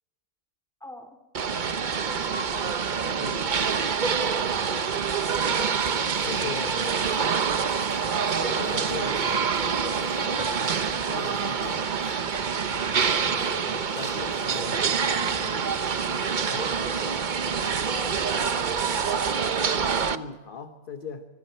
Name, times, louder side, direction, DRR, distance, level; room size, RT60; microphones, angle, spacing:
voice 1, 0.8-1.2 2.0-2.8 17.9-20.0, left 2 dB, 5° left, 4 dB, 2.3 m, -44 dB
sound 1, 1.3-20.2, right 6 dB, 40° right, 0.8 m, -26 dB
voice 2, 3.2-3.6 5.5-5.9 6.2-7.0 8.5-9.6 9.8-11.9 13.2-15.7 16.1-16.7 20.1-21.3, left 5 dB, 40° left, 7 dB, 1.2 m, -39 dB
sound 2, 5.8-6.6 6.8-12.5 13.0-13.6 14.0-14.7, left 1 dB, 60° left, 5.9 m, -50 dB
25.0 x 24.0 x 4.5 m, 1.3 s
omnidirectional pair, 1.4 m